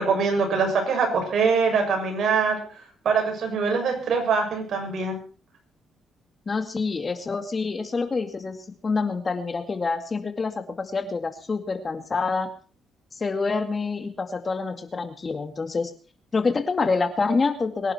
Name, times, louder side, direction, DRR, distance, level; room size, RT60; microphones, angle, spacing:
voice 1, 0.0-2.6 3.1-5.2, right 5 dB, 65° right, 3 dB, 6.9 m, -23 dB
voice 2, 6.5-8.6 8.8-12.5 13.2-15.9 16.3-17.9, left 4 dB, 35° left, 8 dB, 2.3 m, -26 dB
23.5 x 11.0 x 4.4 m, 0.39 s
cardioid pair, 90°, 0 cm